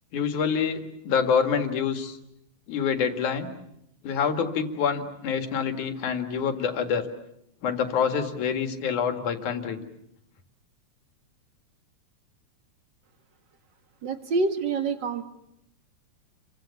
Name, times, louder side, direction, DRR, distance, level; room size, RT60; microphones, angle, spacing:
voice 1, 0.1-2.2 2.7-3.5 4.0-7.0 7.6-9.8, left 6 dB, 85° left, 6 dB, 3.4 m, -26 dB
voice 2, 14.0-15.2, right 4 dB, 45° right, 7 dB, 1.9 m, -26 dB
30.0 x 24.5 x 7.1 m, 0.79 s
omnidirectional pair, 3.4 m